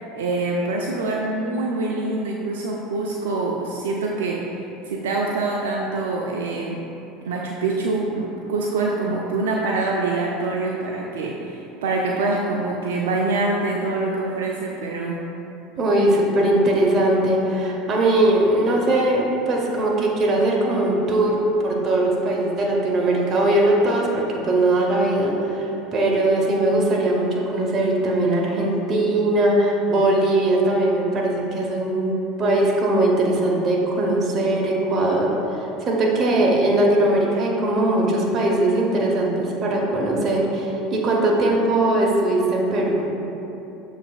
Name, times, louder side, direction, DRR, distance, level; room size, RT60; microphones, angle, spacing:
voice 1, 0.1-4.4 4.8-6.8 7.2-15.2, right 3 dB, 80° right, -2 dB, 0.3 m, -25 dB
voice 2, 15.8-43.1, right 1 dB, 45° right, -2 dB, 0.8 m, -20 dB
6.7 x 3.2 x 2.3 m, 3.0 s
hypercardioid pair, 80°, 0 cm